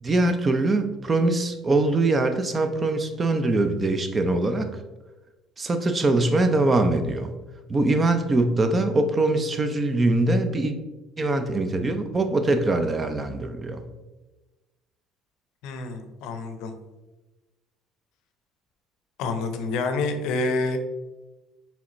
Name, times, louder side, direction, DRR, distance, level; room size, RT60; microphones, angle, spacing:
voice 1, 0.0-4.8 5.6-7.3 7.7-10.7 11.2-13.8, right 2 dB, 30° right, 7 dB, 0.5 m, -23 dB
voice 2, 15.6-16.7 19.2-20.8, left 3 dB, 75° left, 7 dB, 0.6 m, -27 dB
4.8 x 3.4 x 3.0 m, 1.1 s
supercardioid pair, 85°, 0 cm